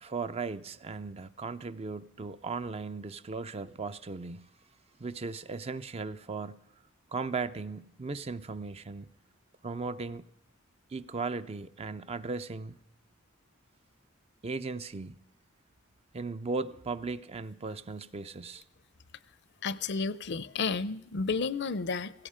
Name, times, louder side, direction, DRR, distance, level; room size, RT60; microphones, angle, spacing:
voice 1, 0.0-4.5 5.0-6.6 7.1-9.1 9.6-10.2 10.9-12.8 14.4-15.2 16.1-18.6, right 4 dB, 30° right, 0.5 m, -37 dB
voice 2, 19.6-22.1, left 4 dB, 55° left, 0.6 m, -31 dB
16.5 x 16.0 x 5.0 m
head